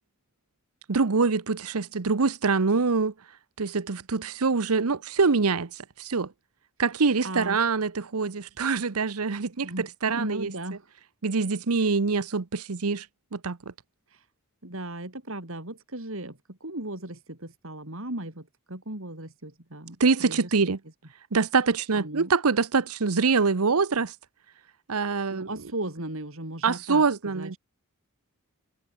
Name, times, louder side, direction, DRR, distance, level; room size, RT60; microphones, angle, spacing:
voice 1, 0.9-3.1 3.6-6.3 6.8-10.5 11.2-13.1 13.3-13.6 20.0-20.8 21.3-24.1 24.9-25.5 26.6-27.6, right 4 dB, 90° right, 0.9 m, -25 dB
voice 2, 7.2-7.6 9.6-10.9 11.8-12.0 14.1-14.2 14.6-20.0 20.2-20.7 21.9-22.3 25.3-27.0 27.3-27.6, right 1 dB, 65° right, 4.2 m, -36 dB
head